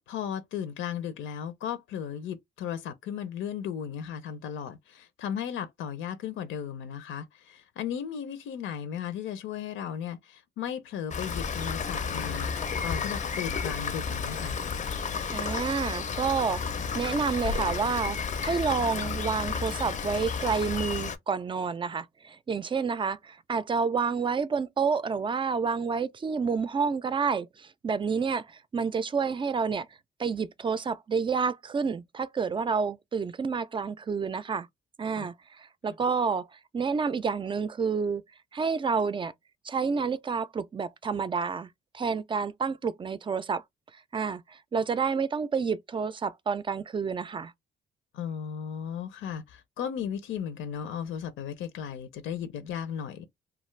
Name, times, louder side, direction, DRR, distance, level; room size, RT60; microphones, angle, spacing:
voice 1, 0.0-14.6 35.1-35.3 48.1-53.3, left 8 dB, 85° left, 0.6 m, -35 dB
Rain, 11.1-21.2, left 5 dB, 40° left, 0.5 m, -32 dB
voice 2, 15.3-29.9 30.2-34.7 35.0-36.5 36.7-38.2 38.5-39.3 39.6-43.6 44.1-47.5, right 5 dB, 25° right, 0.4 m, -29 dB
2.4 x 2.3 x 3.1 m
cardioid pair, 90°, 20 cm